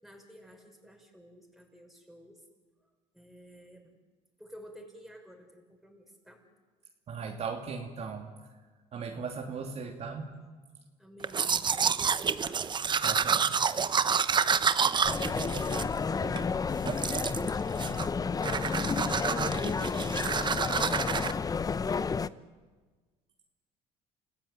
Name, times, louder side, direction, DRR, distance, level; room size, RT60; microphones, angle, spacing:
voice 1, 0.0-2.4 3.1-4.0 4.4-6.4 11.0-12.8, equal, ahead, 2 dB, 6.1 m, -52 dB
voice 2, 7.1-8.3 8.9-10.3 13.0-13.6, right 5 dB, 45° right, 2 dB, 2.9 m, -37 dB
Domestic sounds home sounds, 11.2-16.5 16.9-17.5 17.8-18.2 18.4-21.3, right 6 dB, 30° right, 1.0 m, -29 dB
sound 1, 15.0-22.3, left 5 dB, 25° left, 0.7 m, -31 dB
30.0 x 15.5 x 9.5 m, 1.4 s
supercardioid pair, 85°, 14 cm